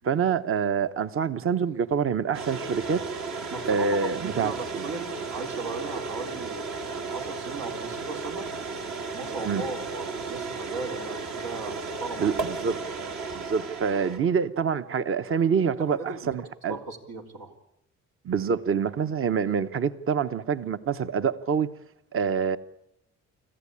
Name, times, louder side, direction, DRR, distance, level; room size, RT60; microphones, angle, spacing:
voice 1, 0.0-3.0 3.7-4.8 9.4-9.6 12.2-12.8 13.4-16.8 18.2-21.7 22.1-22.6, right 6 dB, 45° right, 1.0 m, -26 dB
sound 1, 2.3-14.2, right 4 dB, 65° right, 2.7 m, -34 dB
voice 2, 3.5-4.0 4.2-6.6 7.1-8.5 9.1-12.4 15.9-16.3 16.7-17.5, right 3 dB, 90° right, 3.8 m, -37 dB
26.0 x 14.5 x 8.7 m
cardioid pair, 90°, 30 cm